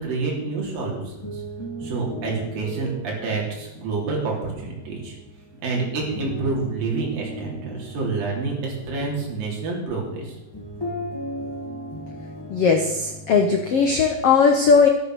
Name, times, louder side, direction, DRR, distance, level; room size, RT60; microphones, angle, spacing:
voice 1, 0.0-1.4 1.8-5.2 5.6-10.3, right 3 dB, 65° right, -2 dB, 5.1 m, -28 dB
sound 1, 0.9-14.1, equal, 30° left, 0.4 m, -37 dB
voice 2, 12.5-14.9, left 5 dB, 70° left, 5 dB, 1.4 m, -18 dB
13.0 x 11.5 x 6.4 m, 0.92 s
omnidirectional pair, 4.4 m